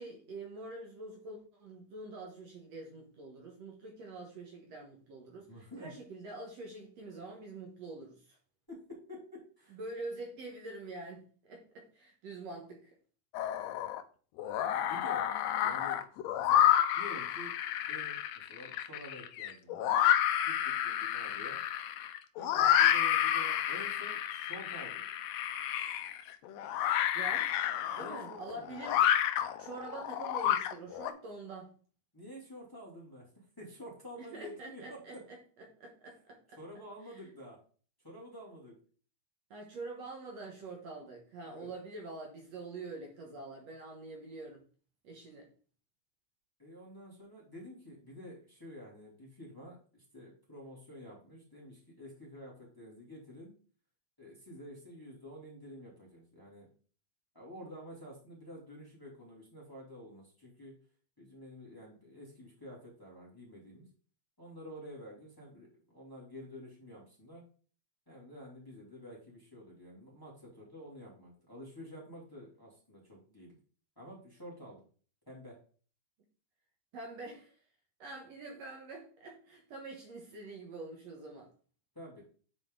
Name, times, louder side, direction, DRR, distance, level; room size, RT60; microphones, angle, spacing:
voice 1, 0.0-8.4 9.7-12.9 27.1-27.5 28.0-29.3 29.6-31.7 34.2-35.4 35.8-36.6 37.1-37.3 39.5-44.6 45.0-45.5 76.9-77.6 78.0-81.5, right 3 dB, 65° right, 1 dB, 2.3 m, -45 dB
voice 2, 5.5-5.9 8.7-9.8 14.6-15.2 15.6-16.0 16.4-16.6 16.9-17.5 17.9-19.8 20.4-21.6 22.4-25.0 28.0-28.8 32.1-35.2 36.6-37.6 38.0-38.8 41.4-41.7 46.6-53.5 54.2-56.7 57.3-60.7 61.2-63.9 64.4-67.4 68.1-73.6 74.0-74.8 75.3-75.6 81.9-82.2, equal, 10° left, -4 dB, 2.1 m, -49 dB
sound 1, 13.3-14.0 14.4-31.1, left 11 dB, 75° left, 1.6 m, -30 dB
9.3 x 4.4 x 3.8 m, 0.41 s
omnidirectional pair, 3.5 m